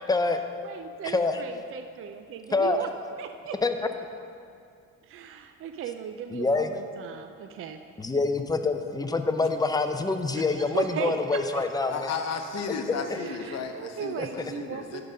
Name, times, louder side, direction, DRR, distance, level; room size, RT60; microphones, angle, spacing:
voice 1, 0.1-0.4 1.0-1.4 2.5-2.9 3.6-3.9 6.3-6.7 8.0-12.1 14.2-14.3, left 3 dB, 15° left, 7 dB, 0.5 m, -26 dB
voice 2, 0.6-2.9 3.2-3.6 5.1-7.8 10.3-11.9 13.2-15.0, right 8 dB, 45° right, 7 dB, 0.4 m, -37 dB
voice 3, 11.9-15.0, left 5 dB, 60° left, 5 dB, 0.9 m, -34 dB
10.5 x 3.9 x 5.4 m, 2.4 s
cardioid pair, 90°, 30 cm